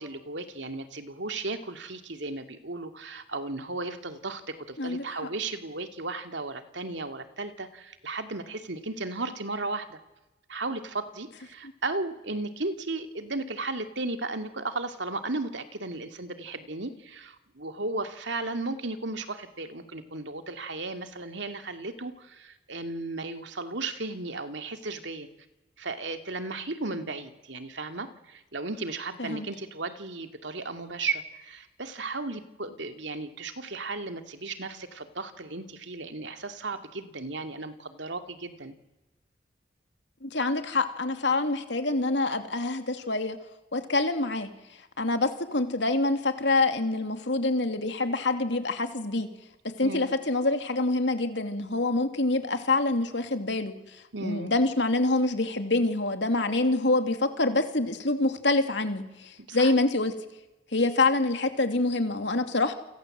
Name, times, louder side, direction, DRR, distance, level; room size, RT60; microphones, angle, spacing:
voice 1, 0.0-10.0 10.5-25.3 25.8-38.7 49.8-50.1 54.1-54.5 59.5-59.7, right 3 dB, 75° right, 7 dB, 2.5 m, -35 dB
voice 2, 40.2-43.4 43.7-44.5 45.0-49.3 49.8-53.7 54.2-59.0 59.5-60.1 60.7-62.7, left 2 dB, 70° left, 7 dB, 2.8 m, -26 dB
29.5 x 24.5 x 8.0 m, 1.0 s
head